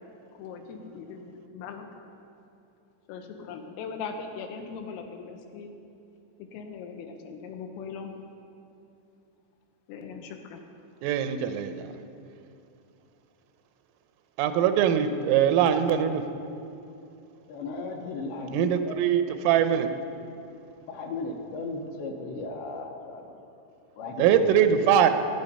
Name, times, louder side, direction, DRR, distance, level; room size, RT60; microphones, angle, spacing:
voice 1, 0.4-2.1 3.1-5.8 6.4-8.2 9.9-10.6, left 5 dB, 90° left, 4 dB, 3.9 m, -40 dB
voice 2, 11.0-11.9 14.4-16.2 18.5-19.9 24.2-25.1, right 9 dB, 90° right, 9 dB, 3.5 m, -22 dB
voice 3, 17.5-19.0 20.9-23.4 24.0-24.9, left 3 dB, 70° left, 2 dB, 3.0 m, -36 dB
22.0 x 11.0 x 5.4 m, 2.7 s
omnidirectional pair, 5.7 m